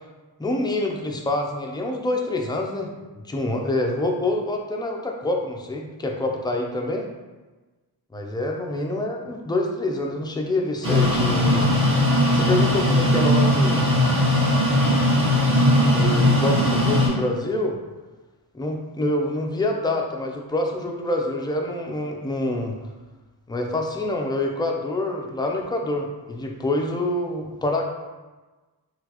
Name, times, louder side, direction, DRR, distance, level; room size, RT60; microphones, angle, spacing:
voice 1, 0.4-2.9 3.3-7.1 8.1-11.8 12.3-13.8 15.9-17.8 18.5-22.8 23.5-27.8, left 2 dB, 10° left, 1 dB, 0.3 m, -26 dB
sound 1, 10.8-17.1, left 1 dB, 30° right, 1.2 m, -19 dB
3.8 x 2.4 x 2.9 m, 1.2 s
wide cardioid pair, 100°, 41 cm